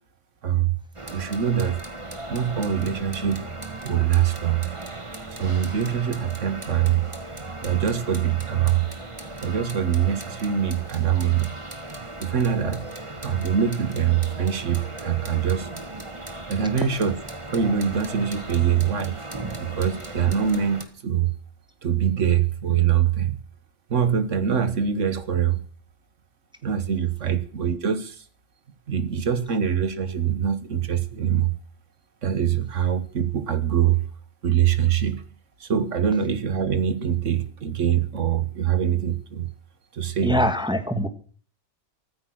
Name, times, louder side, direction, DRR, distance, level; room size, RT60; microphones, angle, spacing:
voice 1, 0.4-0.8 1.1-1.8 2.3-3.5 3.8-4.7 5.4-7.1 7.6-8.9 9.4-11.5 12.2-12.9 13.2-15.7 16.5-17.1 17.5-19.2 19.6-21.3 21.8-23.4 23.9-25.6 26.6-28.2 28.9-31.5 32.2-34.1 34.4-35.2 35.6-39.5 39.9-40.4, right 9 dB, 75° right, 13 dB, 1.7 m, -23 dB
sound 1, 0.9-20.8, right 2 dB, 25° right, 1.9 m, -37 dB
voice 2, 40.2-41.1, left 1 dB, 5° right, 8 dB, 1.6 m, -23 dB
14.5 x 14.0 x 6.3 m, 0.43 s
omnidirectional pair, 1.3 m